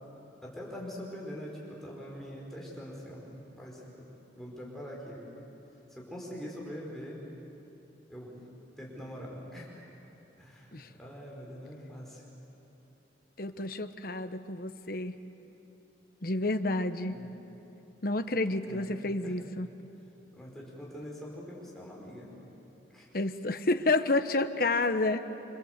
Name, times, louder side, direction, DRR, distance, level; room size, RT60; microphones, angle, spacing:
voice 1, 0.4-4.1 4.4-5.2 5.9-7.2 8.1-8.3 8.8-9.8 10.4-12.2 17.1-17.3 18.6-18.9 19.2-19.5 20.3-22.3 22.9-23.2, equal, ahead, -4 dB, 5.3 m, -43 dB
voice 2, 13.4-15.1 16.2-17.2 18.0-19.7 23.1-25.2, left 2 dB, 50° left, 9 dB, 1.1 m, -29 dB
27.0 x 26.0 x 8.2 m, 3.0 s
head